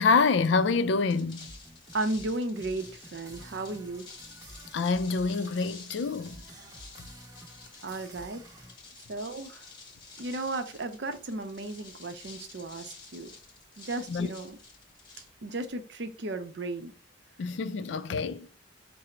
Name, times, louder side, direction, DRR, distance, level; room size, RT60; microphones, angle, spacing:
voice 1, 0.0-1.5 4.7-6.4 14.1-14.3 17.4-18.5, left 4 dB, 65° left, 0.4 m, -26 dB
sound 1, 1.1-15.8, left 4 dB, 25° left, 0.9 m, -51 dB
sound 2, 1.4-8.8, right 1 dB, 20° right, 0.7 m, -50 dB
voice 2, 1.9-4.1 7.8-8.4 9.1-9.7 10.2-13.3 13.8-14.6 15.4-16.9, right 2 dB, 60° right, 0.6 m, -34 dB
4.8 x 2.0 x 4.3 m
head